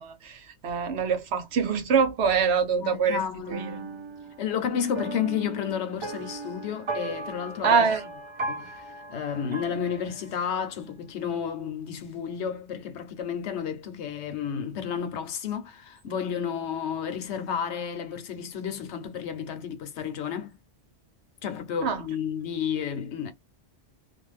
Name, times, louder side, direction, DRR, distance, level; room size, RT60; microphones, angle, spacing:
voice 1, 0.0-3.2 3.5-3.7 7.6-8.0 21.8-22.0, right 6 dB, 65° right, 1.0 m, -24 dB
voice 2, 2.8-4.0 4.4-7.8 8.5-20.6 21.4-23.3, left 8 dB, 70° left, 1.0 m, -32 dB
sound 1, 3.5-10.5, right 3 dB, 45° right, 0.4 m, -37 dB
2.5 x 2.3 x 3.2 m
omnidirectional pair, 1.2 m